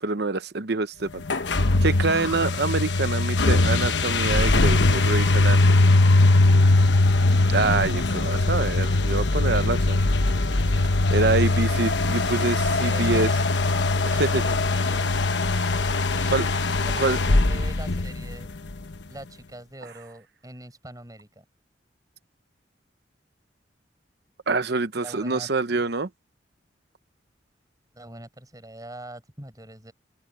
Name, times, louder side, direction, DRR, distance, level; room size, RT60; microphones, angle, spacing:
voice 1, 0.0-1.2 1.8-5.8 7.5-10.0 10.7-10.8 11.1-13.3 14.2-14.4 16.3-16.4 17.0-17.2 24.5-26.1, right 3 dB, 60° right, 0.9 m, -25 dB
sound 1, 1.2-18.7, left 2 dB, 70° left, 1.1 m, -21 dB
voice 2, 11.4-12.0 12.8-13.3 14.1-15.2 16.1-16.4 16.9-18.5 19.1-21.4 25.0-25.8 27.9-29.9, right 1 dB, 20° right, 6.1 m, -43 dB
open air
head